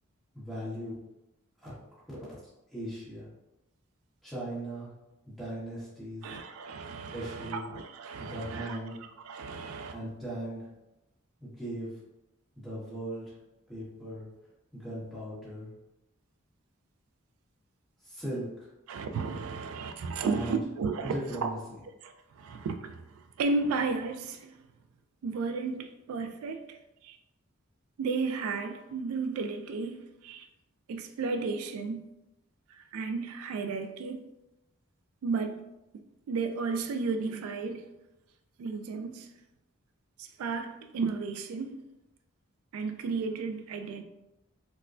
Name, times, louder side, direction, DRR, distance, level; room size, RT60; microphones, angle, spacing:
voice 1, 0.3-1.0 1.6-1.7 2.7-3.3 4.2-4.9 5.2-6.3 7.1-7.7 8.2-8.9 9.9-10.7 11.4-12.0 12.5-13.3 13.7-14.3 14.7-15.7 18.0-18.7 20.2-20.6 21.0-21.6, right 1 dB, ahead, 1.4 m, -38 dB
voice 2, 6.2-10.0 18.9-21.1 21.4-21.5 22.0-24.6 25.2-27.2 28.0-30.5 30.9-32.0 32.7-34.2 35.2-35.6 36.3-37.9 38.6-39.3 40.2-41.8 42.7-44.0, right 4 dB, 85° right, 0.3 m, -33 dB
4.2 x 2.2 x 2.5 m
head